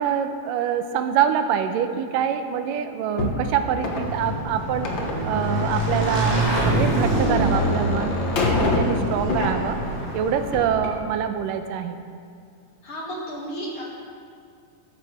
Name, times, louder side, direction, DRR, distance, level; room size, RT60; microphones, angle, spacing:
voice 1, 0.0-4.9 5.2-8.1 8.5-9.8 10.1-12.0, right 8 dB, 90° right, 8 dB, 2.3 m, -25 dB
sound 1, 3.2-10.0 10.4-11.0, left 2 dB, 60° left, 1.2 m, -28 dB
Motorcycle / Engine, 3.6-10.9, right 1 dB, 15° left, 3.0 m, -25 dB
voice 2, 12.8-13.8, equal, 45° left, -4 dB, 2.2 m, -33 dB
13.5 x 13.5 x 3.3 m, 2.2 s
omnidirectional pair, 3.8 m